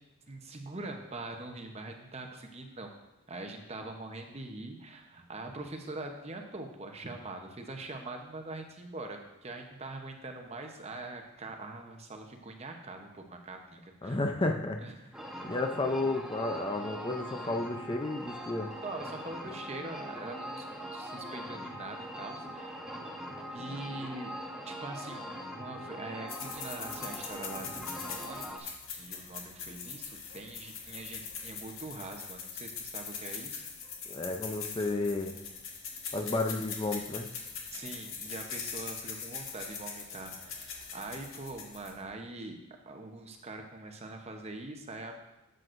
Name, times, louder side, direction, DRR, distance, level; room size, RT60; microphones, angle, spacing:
voice 1, 0.3-2.9 3.3-14.2 14.8-15.5 18.8-22.8 23.5-33.7 37.7-42.6 42.9-45.2, right 2 dB, 30° right, 4 dB, 0.9 m, -43 dB
voice 2, 14.0-14.8 15.4-18.7 34.1-35.3 36.1-37.3, left 2 dB, 20° left, 4 dB, 0.5 m, -32 dB
sound 1, 15.1-28.6, equal, 5° right, 1.0 m, -42 dB
sound 2, 26.3-42.1, left 6 dB, 65° left, 1.6 m, -42 dB
12.0 x 7.8 x 2.6 m, 0.97 s
head